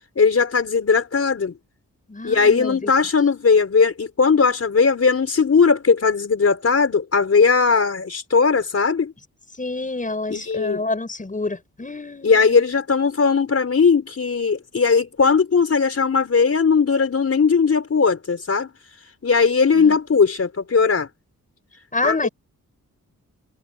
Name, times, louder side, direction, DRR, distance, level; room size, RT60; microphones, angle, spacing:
voice 1, 0.2-1.5 2.2-9.1 10.3-10.8 12.2-18.7 19.2-21.1 22.0-22.3, left 5 dB, 50° left, 4.9 m, -18 dB
voice 2, 2.1-2.9 9.6-12.6 19.8-19.9 21.9-22.3, left 2 dB, 25° left, 7.3 m, -27 dB
cardioid pair, 90°, 32 cm